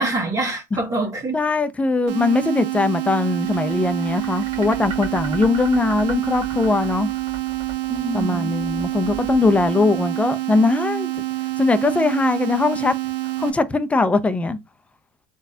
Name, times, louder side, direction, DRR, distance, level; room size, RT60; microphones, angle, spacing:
voice 1, 0.0-1.4 7.9-8.5, right 2 dB, 30° right, 1.2 m, -25 dB
voice 2, 1.3-7.1 8.1-11.1 11.6-12.9 13.4-14.6, left 3 dB, 10° left, 0.5 m, -20 dB
sound 1, 2.1-13.5, right 18 dB, 75° right, 0.6 m, -27 dB
sound 2, 3.4-10.5, right 5 dB, 45° right, 1.8 m, -36 dB
3.8 x 2.3 x 2.7 m
supercardioid pair, 100°, 11 cm